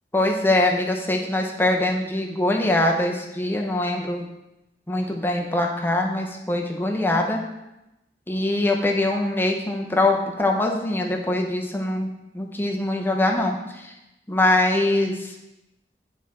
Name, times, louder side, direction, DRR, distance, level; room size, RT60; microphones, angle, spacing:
voice 1, 0.1-4.3 4.9-7.4 8.3-12.1 12.3-13.9 14.3-15.3, left 1 dB, 10° left, 1 dB, 0.8 m, -23 dB
9.9 x 3.7 x 4.2 m, 0.94 s
head